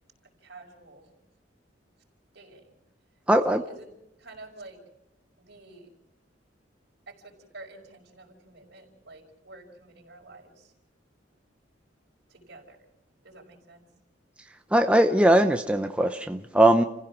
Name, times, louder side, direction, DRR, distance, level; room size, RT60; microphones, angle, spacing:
voice 1, 0.4-1.1 2.3-2.6 3.4-3.9 4.2-4.8 5.4-5.9 7.1-10.7 12.3-12.8 13.2-13.8, right 2 dB, 65° right, 1 dB, 5.3 m, -48 dB
voice 2, 3.3-3.6 14.7-16.8, right 1 dB, 5° right, 6 dB, 0.8 m, -20 dB
29.0 x 16.0 x 6.2 m, 0.82 s
head